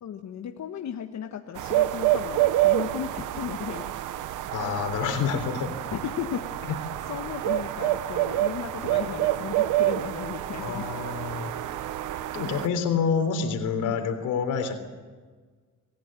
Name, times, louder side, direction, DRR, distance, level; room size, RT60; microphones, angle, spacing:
voice 1, 0.0-3.9 5.9-6.4 7.1-10.9 13.8-14.0, left 9 dB, 65° left, 4 dB, 1.4 m, -35 dB
sound 1, 1.6-12.7, right 14 dB, 90° right, 1.0 m, -28 dB
voice 2, 4.5-5.7 10.6-11.5 12.3-14.8, left 6 dB, 85° left, 7 dB, 3.6 m, -27 dB
25.5 x 15.5 x 8.9 m, 1.5 s
cardioid pair, 90°, 30 cm